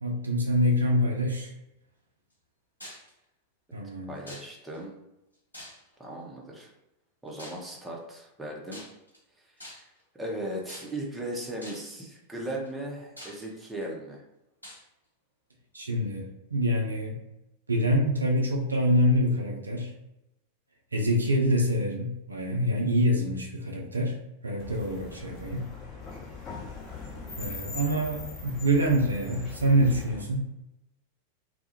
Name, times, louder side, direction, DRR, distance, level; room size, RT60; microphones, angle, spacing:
voice 1, 0.0-1.5 3.7-4.1 15.7-16.2 16.5-17.2 17.7-19.9 20.9-24.2 24.4-25.7 27.4-30.5, equal, 80° right, 0 dB, 0.4 m, -26 dB
sound 1, 2.8-3.1 4.3-4.8 5.5-6.1 7.4-7.7 8.7-9.2 9.6-10.0 10.7-11.1 11.6-12.0 12.6-12.7 13.2-13.8 14.6-14.8, left 1 dB, 85° left, 0.6 m, -45 dB
voice 2, 4.1-4.9 6.0-6.7 7.2-8.8 9.6-9.8 10.1-14.2, right 1 dB, 10° right, -2 dB, 0.5 m, -37 dB
sound 2, 24.6-30.2, left 4 dB, 30° left, 0.7 m, -41 dB
2.2 x 2.0 x 2.8 m, 0.90 s
figure-of-eight pair, 90°, 0 cm